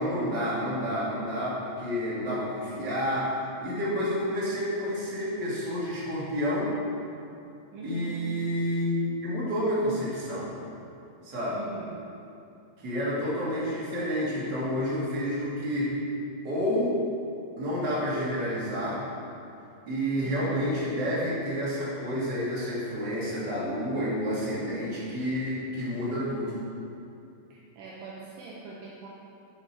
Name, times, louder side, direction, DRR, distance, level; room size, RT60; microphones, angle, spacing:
voice 1, 0.0-6.7 7.8-10.5 11.2-11.6 12.8-16.0 16.4-17.0 17.6-19.0 19.9-26.6, equal, 35° right, -8 dB, 1.9 m, -29 dB
voice 2, 7.7-8.4 11.5-12.2 20.2-20.7 27.5-29.1, right 3 dB, 85° right, -4 dB, 1.9 m, -43 dB
8.4 x 7.3 x 4.6 m, 2.6 s
omnidirectional pair, 5.0 m